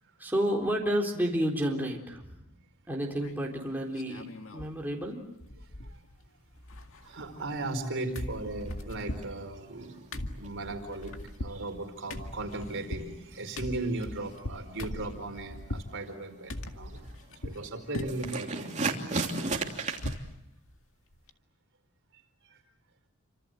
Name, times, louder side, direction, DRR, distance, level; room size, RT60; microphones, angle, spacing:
voice 1, 0.2-2.3 2.9-5.2, equal, 10° right, -1 dB, 3.9 m, -30 dB
sound 1, 3.2-3.6 4.0-4.8 5.0-5.1 5.4-6.3 6.5-7.9 8.2-15.9 16.5-17.6 17.9-18.4 18.8-20.3 20.7-20.8 21.1-21.3, left 1 dB, 65° left, 2.0 m, -40 dB
voice 2, 7.0-17.0 17.4-18.7 22.5-22.6, right 2 dB, 60° right, 5 dB, 4.6 m, -37 dB
sound 2, 7.1-11.3 11.6-20.1, right 3 dB, 35° right, 3.0 m, -37 dB
29.0 x 26.5 x 7.8 m, 0.84 s
head